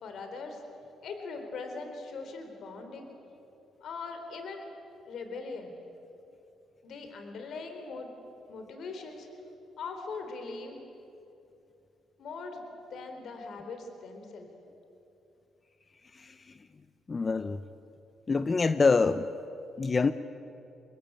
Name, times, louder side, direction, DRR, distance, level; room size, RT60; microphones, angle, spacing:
voice 1, 0.0-0.6 1.0-3.1 3.8-4.7 5.1-5.7 6.8-8.1 8.5-9.3 9.8-10.8 12.2-12.6 12.9-14.5, left 4 dB, 65° left, 5 dB, 3.9 m, -40 dB
voice 2, 17.1-17.6 18.3-19.3 19.8-20.1, left 4 dB, 30° left, 11 dB, 0.8 m, -25 dB
26.5 x 22.0 x 8.9 m, 2.8 s
cardioid pair, 90°, 0 cm